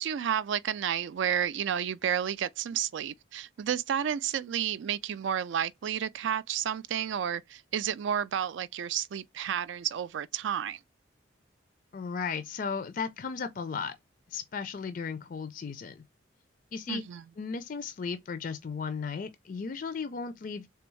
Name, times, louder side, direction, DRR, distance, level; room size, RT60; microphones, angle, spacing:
voice 1, 0.0-10.8 16.9-17.2, right 9 dB, 70° right, 0.3 m, -31 dB
voice 2, 11.9-13.9 14.3-16.0 16.7-17.0 17.4-20.7, left 5 dB, 45° left, 0.4 m, -35 dB
3.5 x 3.4 x 3.1 m
head